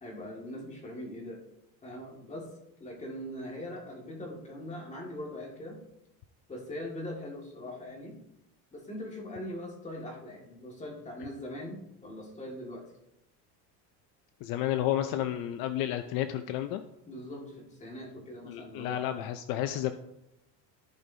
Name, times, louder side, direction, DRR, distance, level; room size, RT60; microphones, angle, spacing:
voice 1, 0.0-1.4 1.8-2.5 2.8-5.8 6.5-8.2 8.7-12.9 17.1-19.1, left 1 dB, 20° left, -1 dB, 2.0 m, -41 dB
voice 2, 14.4-16.8 18.5-19.9, left 12 dB, 65° left, 9 dB, 0.6 m, -31 dB
14.5 x 5.2 x 2.8 m, 0.86 s
cardioid pair, 145°, 38 cm